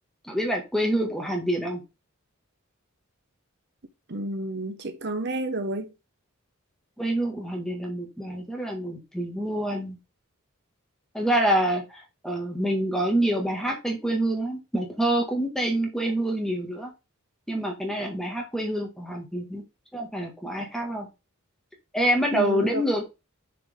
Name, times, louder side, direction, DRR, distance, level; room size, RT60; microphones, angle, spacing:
voice 1, 0.2-1.8 7.0-10.0 11.1-16.9 17.5-19.6 19.9-21.1 21.9-23.0, right 1 dB, ahead, 1.8 m, -26 dB
voice 2, 4.1-5.9 22.3-22.8, right 2 dB, 55° right, 1.0 m, -30 dB
6.8 x 4.8 x 3.7 m
head